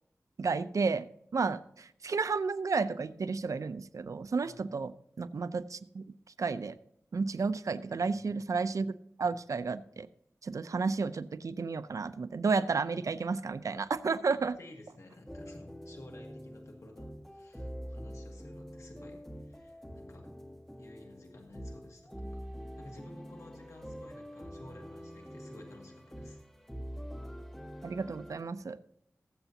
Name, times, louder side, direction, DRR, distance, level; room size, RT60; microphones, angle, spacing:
voice 1, 0.4-1.1 1.3-6.0 6.4-6.7 7.1-8.9 9.2-10.1 10.4-14.6 27.8-28.8, right 4 dB, 75° right, 13 dB, 0.6 m, -32 dB
voice 2, 7.7-8.3 14.6-20.3 20.8-26.4, left 1 dB, 65° left, 1 dB, 2.0 m, -53 dB
sound 1, 15.3-28.4, equal, 5° left, 1.5 m, -45 dB
20.0 x 8.0 x 2.8 m, 0.75 s
wide cardioid pair, 70°, 6 cm